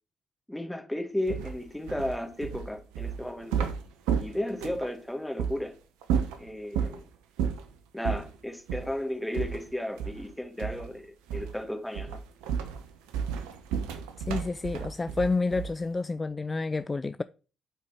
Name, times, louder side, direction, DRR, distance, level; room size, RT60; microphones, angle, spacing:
voice 1, 0.5-3.7 4.1-5.8 6.4-7.0 7.9-12.2, left 1 dB, 5° left, 1.9 m, -34 dB
sound 1, 1.3-4.9 5.4-5.6 6.0-7.0 7.4-7.7 8.0-8.3 8.7-8.9 9.3-10.3 10.6-10.9 11.3-11.6 11.9-15.9, right 7 dB, 75° right, 0.9 m, -32 dB
voice 2, 14.2-17.2, left 3 dB, 25° left, 0.3 m, -29 dB
7.9 x 4.7 x 4.4 m
hypercardioid pair, 45°, 0 cm